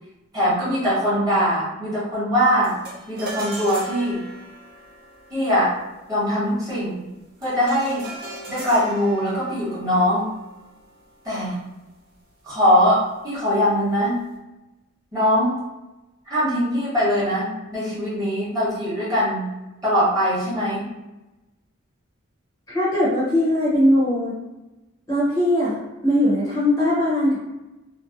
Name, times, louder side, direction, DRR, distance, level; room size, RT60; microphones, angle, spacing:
voice 1, 0.3-2.8 3.1-4.2 5.3-5.7 6.1-7.0 7.4-8.1 8.5-10.3 11.2-11.6 12.4-14.2 15.1-15.6 16.3-19.5 19.8-20.9, equal, 15° right, -10 dB, 1.0 m, -21 dB
sound 1, 2.6-12.1, right 2 dB, 45° right, 0.6 m, -40 dB
voice 2, 22.7-24.4 25.1-27.4, left 1 dB, 15° left, -10 dB, 0.7 m, -20 dB
2.7 x 2.0 x 2.4 m, 1.0 s
head